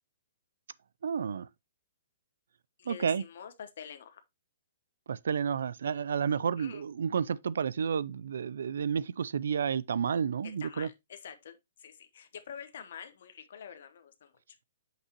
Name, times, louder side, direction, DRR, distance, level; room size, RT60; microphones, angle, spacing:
voice 1, 1.0-1.5 2.9-3.2 5.1-10.9, right 7 dB, 70° right, 0.4 m, -31 dB
voice 2, 2.8-4.2 6.6-6.8 10.4-14.3, left 8 dB, 55° left, 0.9 m, -47 dB
6.0 x 5.5 x 2.9 m
hypercardioid pair, 175°, 0 cm